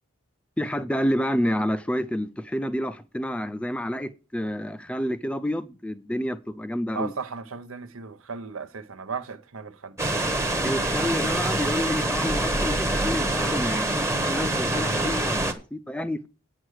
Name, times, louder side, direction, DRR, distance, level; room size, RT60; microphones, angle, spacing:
voice 1, 0.6-7.1 10.6-16.3, equal, 5° left, 0.4 m, -29 dB
voice 2, 6.9-10.0, right 5 dB, 80° right, 0.8 m, -35 dB
sound 1, 10.0-15.5, right 1 dB, 15° right, 0.9 m, -25 dB
9.2 x 6.1 x 6.4 m
head